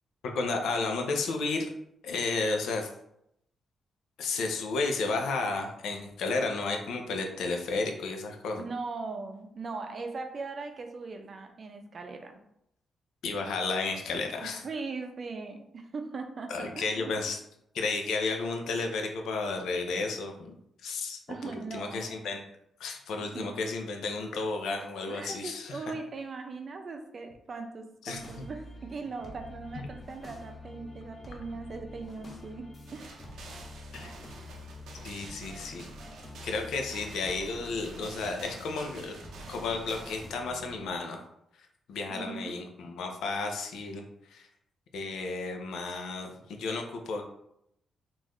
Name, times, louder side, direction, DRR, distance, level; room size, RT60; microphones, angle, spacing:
voice 1, 0.3-1.7 2.0-2.9 4.2-8.6 13.2-14.6 16.5-17.4 17.7-20.5 20.8-21.2 21.5-22.4 22.8-25.8 28.0-28.2 33.9-34.1 35.0-35.9 36.4-39.1 39.5-41.2 41.9-44.0 44.3-44.5 44.9-47.2, left 3 dB, 85° left, 3 dB, 0.6 m, -32 dB
voice 2, 8.5-12.4 14.4-17.1 21.3-22.3 23.3-23.5 25.1-33.2 42.1-42.6, right 4 dB, 40° right, 5 dB, 0.5 m, -39 dB
sound 1, 28.1-41.0, left 2 dB, 30° left, 0.7 m, -47 dB
sound 2, 32.9-40.3, right 3 dB, 85° right, 0.6 m, -48 dB
3.7 x 2.5 x 3.1 m, 0.77 s
cardioid pair, 120°, 0 cm